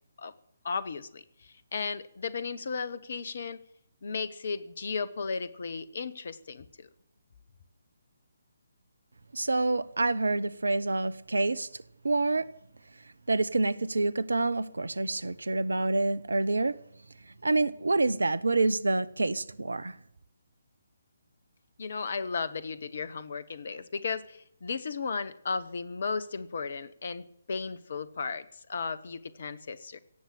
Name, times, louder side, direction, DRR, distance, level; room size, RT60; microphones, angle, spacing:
voice 1, 0.6-3.6 4.0-6.9 21.8-30.0, left 5 dB, 50° left, 1.1 m, -35 dB
voice 2, 9.3-11.7 12.0-12.5 13.3-16.8 17.4-20.0, right 2 dB, 65° right, 0.8 m, -27 dB
17.5 x 7.4 x 10.0 m
figure-of-eight pair, 140°, 0 cm